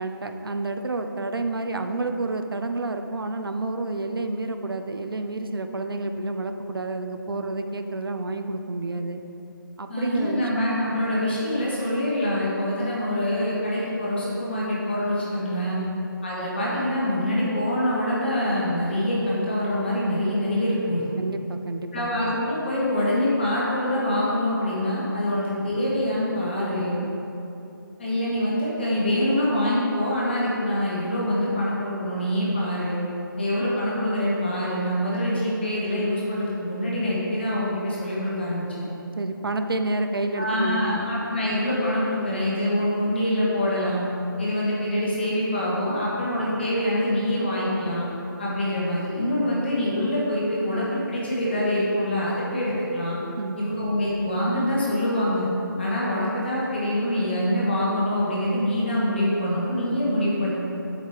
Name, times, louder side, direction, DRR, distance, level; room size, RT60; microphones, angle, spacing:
voice 1, 0.0-9.2 9.8-10.4 15.8-16.0 21.1-22.2 27.0-27.2 39.2-41.1 53.4-53.6, right 2 dB, 80° right, 6 dB, 0.8 m, -29 dB
voice 2, 9.9-15.8 16.2-21.0 21.9-27.0 28.0-33.0 33.4-38.8 40.3-44.1 44.4-48.1 48.4-53.2 53.6-55.5 55.8-60.5, left 1 dB, 30° left, -6 dB, 1.9 m, -25 dB
8.1 x 7.5 x 4.9 m, 2.9 s
figure-of-eight pair, 175°, 12 cm